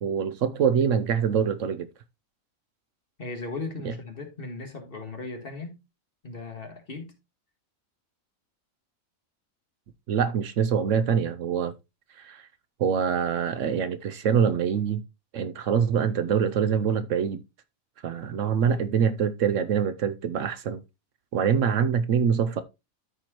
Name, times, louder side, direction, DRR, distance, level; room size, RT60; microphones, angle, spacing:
voice 1, 0.0-1.9 10.1-11.7 12.2-12.5 12.8-15.0 15.3-17.4 18.0-20.8 21.3-22.6, right 7 dB, 70° right, 0.9 m, -24 dB
voice 2, 3.2-5.8 6.2-7.1, left 3 dB, 40° left, 1.9 m, -37 dB
13.0 x 4.4 x 2.9 m
omnidirectional pair, 1.4 m